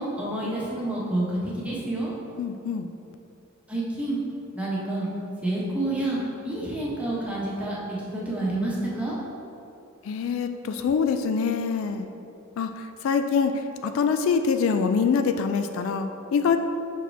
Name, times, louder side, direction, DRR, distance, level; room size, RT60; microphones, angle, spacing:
voice 1, 0.0-2.1 3.7-4.2 4.5-5.1 5.4-9.1, right 1 dB, 5° right, -7 dB, 1.1 m, -28 dB
voice 2, 2.4-2.9 10.0-12.1 12.6-16.6, left 5 dB, 70° left, 9 dB, 0.3 m, -25 dB
5.8 x 4.7 x 3.4 m, 2.7 s
head